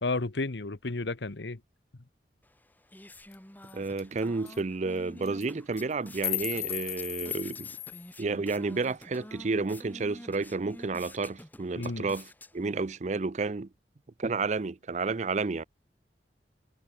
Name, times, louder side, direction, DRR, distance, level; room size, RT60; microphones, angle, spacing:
voice 1, 0.0-1.6 11.8-12.1, left 3 dB, 85° left, 1.1 m, -32 dB
sound 1, 2.4-13.0, left 1 dB, 10° left, 3.6 m, -49 dB
sound 2, 3.3-3.4 3.7-3.8 4.0-4.2 4.5-4.6 5.2-5.5 5.8-8.1, left 17 dB, 60° left, 1.1 m, -35 dB
voice 2, 3.7-7.7 8.2-12.3 12.5-13.7 14.2-15.6, right 3 dB, 40° right, 0.5 m, -31 dB
head